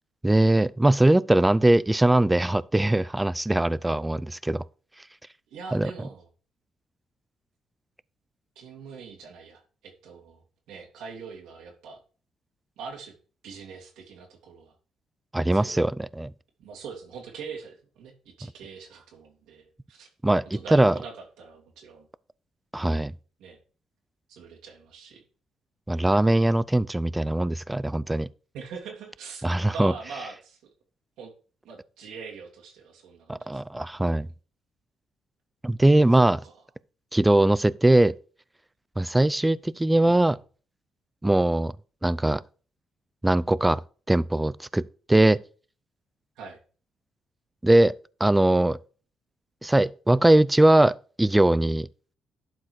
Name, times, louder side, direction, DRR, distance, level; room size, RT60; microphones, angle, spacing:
voice 1, 0.2-4.6 5.7-5.9 15.3-16.3 20.2-20.9 22.7-23.1 25.9-28.3 29.4-29.9 33.3-34.3 35.6-36.4 37.1-38.1 39.0-40.4 41.2-41.7 42.0-42.4 43.2-43.8 44.1-45.4 47.6-47.9 48.2-48.8 49.6-51.9, right 1 dB, 10° right, 0.4 m, -21 dB
voice 2, 5.5-6.2 8.6-12.0 12.8-13.1 13.4-14.8 15.5-15.8 16.6-20.1 20.5-22.1 23.4-23.6 24.3-25.2 28.5-30.6 31.2-31.3 31.6-34.2 36.4-36.5 40.0-40.3 46.4-46.6, right 5 dB, 85° right, 2.6 m, -43 dB
11.5 x 4.7 x 4.8 m
cardioid pair, 90°, 0 cm